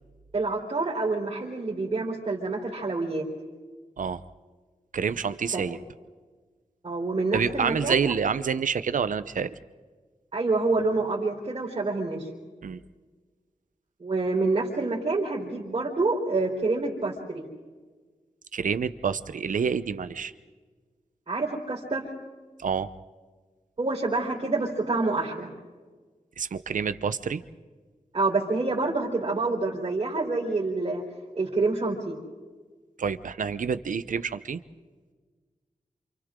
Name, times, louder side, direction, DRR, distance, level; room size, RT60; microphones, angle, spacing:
voice 1, 0.3-3.3 5.5-5.6 6.8-8.0 10.3-12.3 14.0-17.4 21.3-22.1 23.8-25.5 28.1-31.0 31.3-32.2, right 3 dB, 45° right, -6 dB, 4.1 m, -27 dB
voice 2, 4.9-5.8 7.3-9.5 12.6-12.8 18.5-20.3 22.6-22.9 26.4-27.4 33.0-34.6, right 6 dB, 85° right, 13 dB, 0.8 m, -28 dB
28.5 x 28.0 x 3.8 m, 1.4 s
wide cardioid pair, 120°, 13 cm